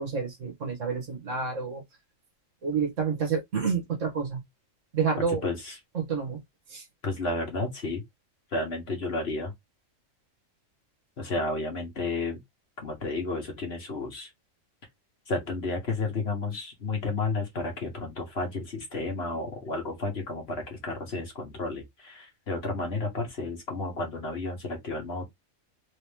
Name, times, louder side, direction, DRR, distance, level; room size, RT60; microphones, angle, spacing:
voice 1, 0.0-1.8 2.6-4.4 4.9-5.4 5.9-6.4 6.7-6.9, right 5 dB, 70° right, 1.7 m, -29 dB
voice 2, 5.4-5.8 7.0-8.0 8.5-9.5 11.2-12.4 12.8-14.3 15.3-25.2, left 3 dB, 50° left, 1.7 m, -32 dB
3.9 x 3.0 x 3.5 m
omnidirectional pair, 1.4 m